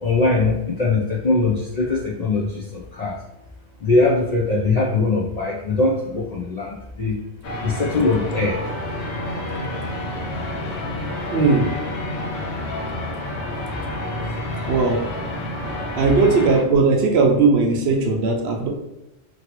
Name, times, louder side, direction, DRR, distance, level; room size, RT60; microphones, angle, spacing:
voice 1, 0.0-3.2 3.8-7.2 7.6-8.6, left 3 dB, 60° left, -4 dB, 0.4 m, -21 dB
sound 1, 7.4-16.6, left 1 dB, 80° left, 1.1 m, -29 dB
voice 2, 11.3-11.7 14.7-15.0 16.0-18.7, right 4 dB, 65° right, 2 dB, 0.7 m, -18 dB
3.0 x 2.6 x 2.9 m, 0.92 s
omnidirectional pair, 1.3 m